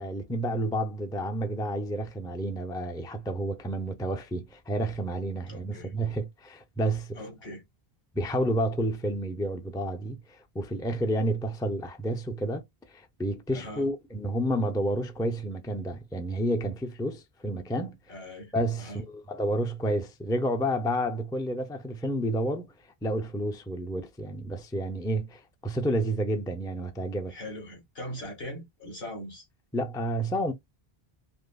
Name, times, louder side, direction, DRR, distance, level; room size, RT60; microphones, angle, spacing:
voice 1, 0.0-7.2 8.1-18.0 18.5-22.7 23.0-27.3 29.7-30.5, right 1 dB, 5° left, 0.5 m, -30 dB
voice 2, 5.5-5.9 7.2-7.6 13.5-13.9 18.1-18.5 18.8-19.0 27.3-29.4, left 1 dB, 70° left, 2.4 m, -40 dB
5.3 x 2.0 x 2.3 m
omnidirectional pair, 1.0 m